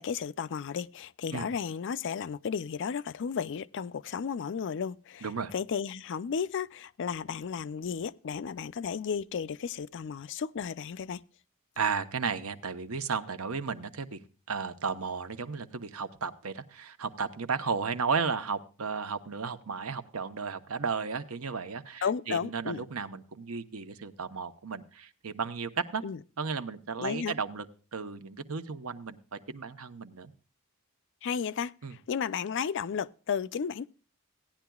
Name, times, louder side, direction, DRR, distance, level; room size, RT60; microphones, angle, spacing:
voice 1, 0.0-5.2 5.5-11.2 22.0-22.8 26.0-26.2 27.0-27.3 31.2-33.9, left 6 dB, 55° left, 0.4 m, -33 dB
voice 2, 5.2-5.5 11.8-14.2 14.5-26.0 26.4-27.7 27.9-30.3 31.8-31.9, right 5 dB, 75° right, 0.9 m, -34 dB
17.0 x 10.5 x 2.3 m
head